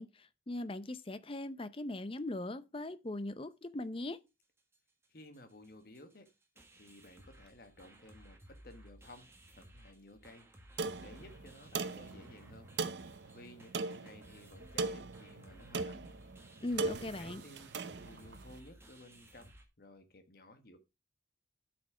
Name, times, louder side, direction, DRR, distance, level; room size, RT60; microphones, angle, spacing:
voice 1, 0.0-4.2 16.6-17.4, left 1 dB, 30° left, 0.6 m, -40 dB
sound 1, 4.1-4.2 4.4-4.8 5.0-5.1 5.3-19.6, right 1 dB, 15° right, 1.6 m, -58 dB
voice 2, 5.1-6.3 6.8-8.4 8.6-10.5 10.7-12.7 13.3-16.1 17.2-20.8, left 1 dB, 55° left, 1.4 m, -56 dB
sound 2, 10.8-18.5, right 4 dB, 70° right, 0.7 m, -40 dB
8.7 x 6.0 x 4.8 m
head